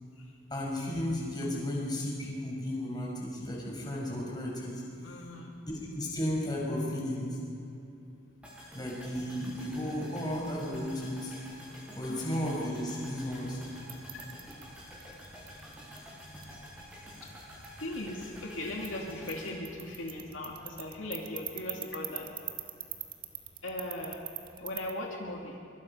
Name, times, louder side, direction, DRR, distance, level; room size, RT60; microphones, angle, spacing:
voice 1, 0.5-4.8 5.7-7.4 8.7-11.3 12.0-13.6, left 1 dB, 20° left, -2 dB, 5.4 m, -34 dB
voice 2, 5.0-5.6 12.1-12.8 17.8-22.3 23.6-24.2 24.6-25.6, left 1 dB, 75° left, -1 dB, 2.6 m, -39 dB
sound 1, 8.4-20.6 20.9-21.0, equal, 5° right, 7.0 m, -49 dB
sound 2, 13.2-24.9, right 10 dB, 45° right, 1.7 m, -46 dB
24.5 x 23.5 x 5.6 m, 2.7 s
head